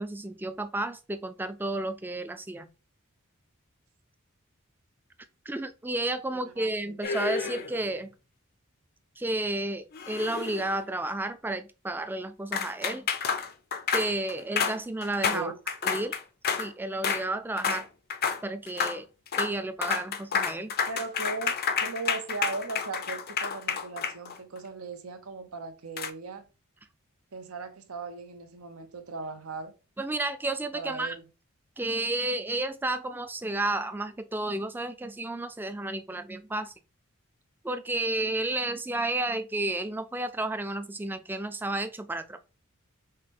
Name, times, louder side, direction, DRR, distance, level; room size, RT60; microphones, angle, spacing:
voice 1, 0.0-2.7 5.5-8.1 9.2-13.1 13.9-15.5 15.8-16.1 16.6-17.9 18.4-19.0 19.3-20.7 30.0-31.2 31.8-36.7 37.6-42.4, right 2 dB, 10° right, 0.4 m, -32 dB
voice 2, 6.3-7.0 15.3-15.5 20.9-21.5 21.8-26.4 27.3-29.7 30.7-31.2, right 4 dB, 90° right, 0.8 m, -38 dB
sound 1, 7.0-7.9 9.9-10.9 12.5-16.7 17.0-17.3 17.6-17.9 18.1-18.4 18.7-19.0 19.3-19.5 19.8-24.6 26.0-26.1, left 6 dB, 45° left, 0.5 m, -30 dB
5.6 x 2.2 x 3.4 m
head